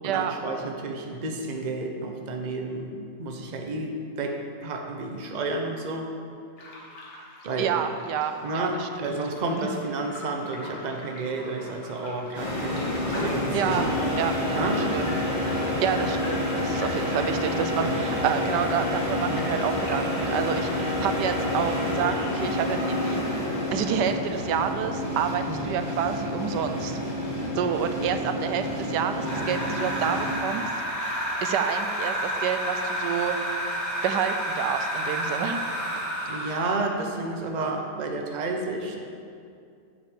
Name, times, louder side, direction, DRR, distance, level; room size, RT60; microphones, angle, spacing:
voice 1, 0.0-6.1 7.4-7.8 8.4-13.9 14.5-14.9 17.7-18.0 19.3-19.5 25.5-25.8 29.1-29.6 36.2-39.0, right 2 dB, 35° right, 2 dB, 0.8 m, -31 dB
sound 1, 6.6-20.2, left 1 dB, 85° left, 2.2 m, -44 dB
voice 2, 7.6-9.2 9.6-9.7 13.5-13.9 14.2-15.2 15.6-23.2 23.7-27.0 27.6-30.7 31.4-33.4 34.0-35.6, right 8 dB, 90° right, 8 dB, 1.3 m, -29 dB
sound 2, 12.3-30.3, left 1 dB, 25° left, 2.6 m, -28 dB
sound 3, 29.2-36.8, equal, 10° left, 2.1 m, -30 dB
7.6 x 7.2 x 6.7 m, 2.4 s
omnidirectional pair, 1.8 m